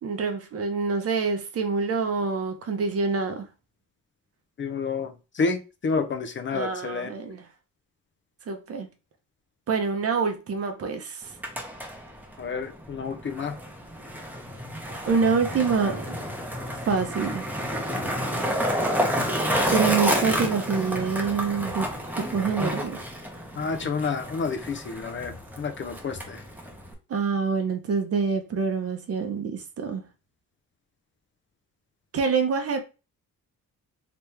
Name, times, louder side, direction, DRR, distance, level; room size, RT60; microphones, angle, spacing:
voice 1, 0.0-3.5 6.5-7.5 8.5-8.9 9.7-11.3 15.1-16.2 16.9-17.5 19.7-21.9 22.2-23.0 27.1-30.0 32.1-32.8, right 5 dB, 45° right, 0.7 m, -26 dB
voice 2, 4.6-7.1 12.4-13.6 23.6-26.4, left 4 dB, 35° left, 0.5 m, -29 dB
Skateboard, 11.2-26.9, equal, 5° right, 0.8 m, -30 dB
3.3 x 2.9 x 3.3 m
cardioid pair, 130°, 34 cm